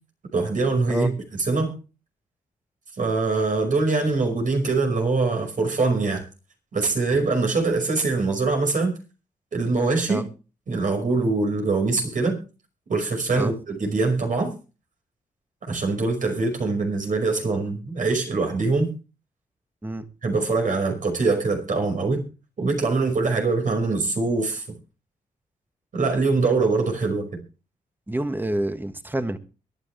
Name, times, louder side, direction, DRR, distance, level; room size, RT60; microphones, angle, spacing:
voice 1, 0.3-1.7 3.0-6.2 6.7-8.9 9.5-10.2 10.7-12.4 12.9-14.5 15.7-18.9 20.2-22.2 22.6-24.6 25.9-27.3, right 3 dB, 60° right, 5.6 m, -23 dB
voice 2, 28.1-29.4, right 1 dB, 15° right, 1.7 m, -27 dB
23.0 x 10.0 x 3.4 m
cardioid pair, 65°, 15 cm